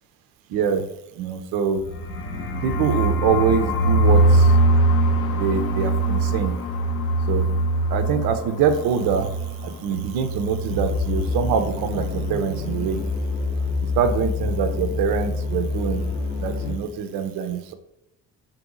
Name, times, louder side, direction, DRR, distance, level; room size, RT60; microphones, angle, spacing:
voice 1, 0.5-0.8 1.2-1.8 2.6-4.2 5.3-6.5 7.3-7.5 7.9-9.3 9.6-13.0 14.0-16.1 16.4-17.7, right 7 dB, 50° right, 8 dB, 0.5 m, -24 dB
sound 1, 1.8-11.5 11.8-11.9 12.1-12.6, right 2 dB, 30° left, 0.4 m, -22 dB
sound 2, 10.7-16.8, left 3 dB, 65° left, 0.9 m, -27 dB
2.6 x 2.4 x 3.7 m, 0.81 s
figure-of-eight pair, 45°, 46 cm